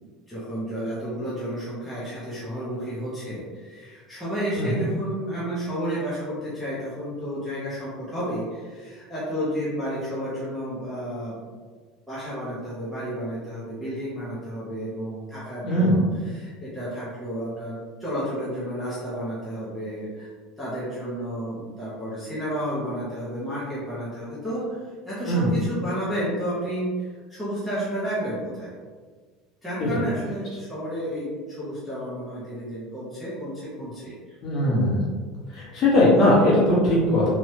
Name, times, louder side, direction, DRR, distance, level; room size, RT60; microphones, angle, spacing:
voice 1, 0.3-11.4 12.1-20.3 20.6-28.7 29.6-34.1, equal, ahead, -11 dB, 0.6 m, -31 dB
voice 2, 15.6-16.0 25.3-25.5 29.8-30.0 34.4-35.0 35.5-37.3, left 1 dB, 35° left, -7 dB, 1.0 m, -20 dB
3.1 x 2.1 x 2.8 m, 1.5 s
cardioid pair, 180°, 0 cm